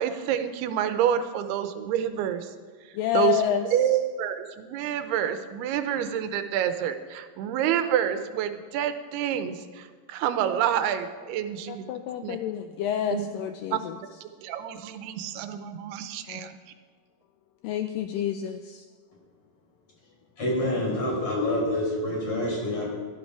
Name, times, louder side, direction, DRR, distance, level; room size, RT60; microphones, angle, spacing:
voice 1, 0.0-2.5 3.1-3.4 3.7-11.9 12.2-12.4 13.1-13.3 13.7-13.8 14.4-16.6, right 10 dB, 85° right, 9 dB, 2.8 m, -28 dB
voice 2, 2.9-3.7 11.7-14.0 16.3-16.5 17.6-18.8, left 10 dB, 85° left, 8 dB, 1.9 m, -28 dB
voice 3, 20.4-22.9, left 1 dB, 35° left, -2 dB, 5.0 m, -27 dB
16.5 x 12.0 x 4.8 m, 1.5 s
omnidirectional pair, 4.5 m